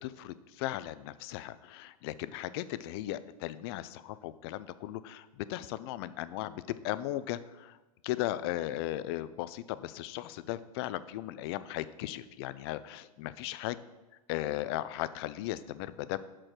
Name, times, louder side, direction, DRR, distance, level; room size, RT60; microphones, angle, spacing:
voice 1, 0.0-7.8 8.0-13.7 14.3-16.2, left 14 dB, 40° left, 14 dB, 0.4 m, -37 dB
6.1 x 4.5 x 6.6 m, 1.1 s
hypercardioid pair, 125°, 20 cm